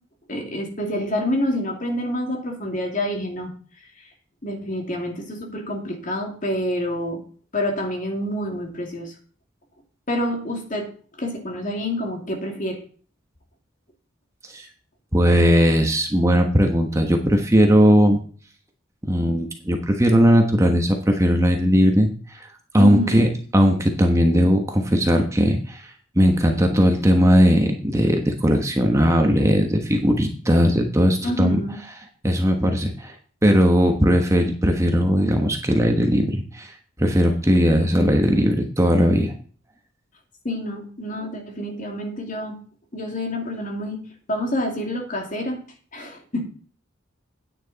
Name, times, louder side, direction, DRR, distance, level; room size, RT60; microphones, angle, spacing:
voice 1, 0.3-3.5 4.4-7.2 7.5-9.1 10.1-10.9 11.2-12.8 22.8-23.3 31.2-31.8 40.4-42.6 42.9-44.0 44.3-45.6 45.9-46.5, left 1 dB, 40° left, 2 dB, 2.5 m, -27 dB
voice 2, 15.1-18.2 19.1-22.4 22.7-25.9 26.2-31.6 32.2-33.1 33.4-36.7 37.0-39.3, equal, 15° right, 3 dB, 1.2 m, -18 dB
9.7 x 9.3 x 4.1 m, 0.42 s
head